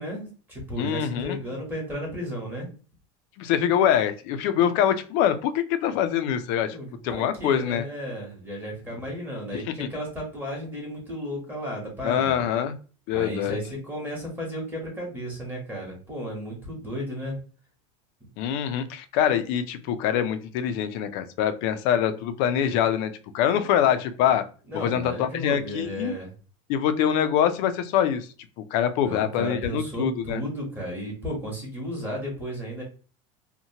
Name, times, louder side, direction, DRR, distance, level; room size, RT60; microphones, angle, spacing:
voice 1, 0.0-2.7 6.7-12.5 13.1-17.4 23.6-24.3 24.7-26.3 29.0-32.8, equal, 10° right, -2 dB, 1.0 m, -34 dB
voice 2, 0.8-1.4 3.4-6.8 7.0-7.8 9.5-9.9 12.0-12.8 13.1-13.6 18.4-24.4 24.7-26.1 26.7-28.3 28.7-30.4, left 9 dB, 55° left, 9 dB, 0.4 m, -24 dB
2.8 x 2.1 x 2.7 m, 0.38 s
supercardioid pair, 145°, 17 cm